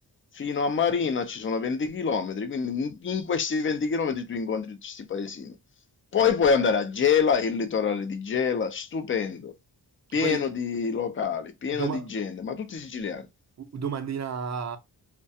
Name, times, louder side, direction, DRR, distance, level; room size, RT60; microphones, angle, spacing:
voice 1, 0.3-5.5 6.1-9.5 10.1-13.3, left 6 dB, 30° left, 0.4 m, -26 dB
voice 2, 10.1-10.5 11.7-12.1 13.6-14.8, right 6 dB, 40° right, 0.5 m, -32 dB
2.3 x 2.2 x 2.7 m
wide cardioid pair, 75°, 41 cm